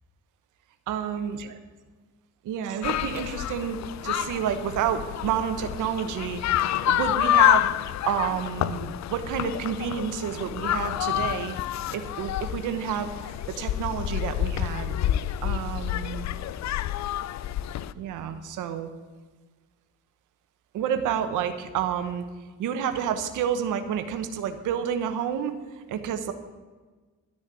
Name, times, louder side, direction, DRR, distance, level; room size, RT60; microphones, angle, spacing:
voice 1, 0.9-1.6 2.4-3.8 4.0-6.4 6.8-11.5 11.9-14.9 15.4-16.3 17.9-18.9 20.7-22.2 22.6-25.6 25.9-26.3, right 8 dB, 85° right, 8 dB, 1.1 m, -29 dB
sound 1, 2.8-17.9, left 12 dB, 65° left, 0.6 m, -28 dB
12.5 x 6.5 x 9.0 m, 1.4 s
cardioid pair, 90°, 30 cm